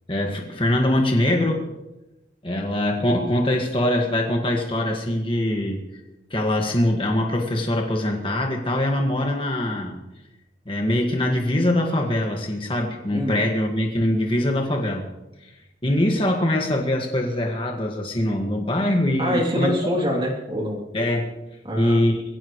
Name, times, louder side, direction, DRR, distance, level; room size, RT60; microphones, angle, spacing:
voice 1, 0.1-1.7 2.4-5.8 6.3-10.0 10.7-15.1 15.8-19.7 20.9-21.5 21.8-22.2, left 1 dB, 30° left, 1 dB, 1.8 m, -23 dB
voice 2, 19.2-20.8 21.6-22.1, equal, 25° right, -1 dB, 3.0 m, -25 dB
23.0 x 16.0 x 3.2 m, 0.98 s
head